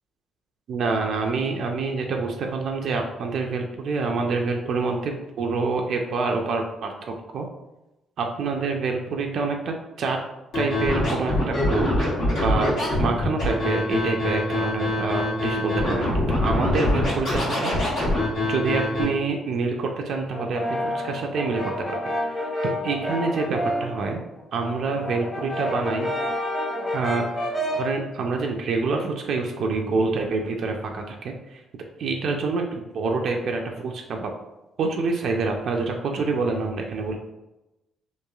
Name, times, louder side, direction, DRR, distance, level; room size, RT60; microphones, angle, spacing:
voice 1, 0.7-6.9 7.3-7.5 8.2-10.2 10.5-12.7 13.0-17.9 18.5-22.5 22.8-24.2 24.5-26.1 26.9-27.5 27.8-31.6 32.0-34.3 34.8-37.2, right 4 dB, 65° right, 2 dB, 0.3 m, -27 dB
Scratching (performance technique), 10.5-19.0, left 1 dB, 85° left, 1.3 m, -24 dB
Brass instrument, 20.3-24.0 24.4-28.0, equal, 30° left, 1.4 m, -29 dB
3.0 x 2.5 x 2.3 m, 0.97 s
cardioid pair, 90°, 0 cm